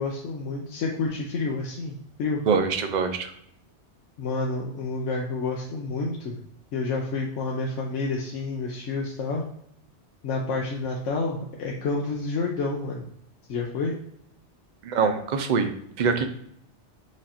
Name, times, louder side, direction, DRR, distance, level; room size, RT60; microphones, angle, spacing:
voice 1, 0.0-2.4 4.2-6.4 6.7-9.4 10.2-13.1 13.5-13.9, left 3 dB, 90° left, -1 dB, 1.0 m, -29 dB
voice 2, 2.5-3.3 14.8-16.2, right 5 dB, 50° right, 7 dB, 0.6 m, -24 dB
5.0 x 2.5 x 4.2 m, 0.72 s
omnidirectional pair, 1.2 m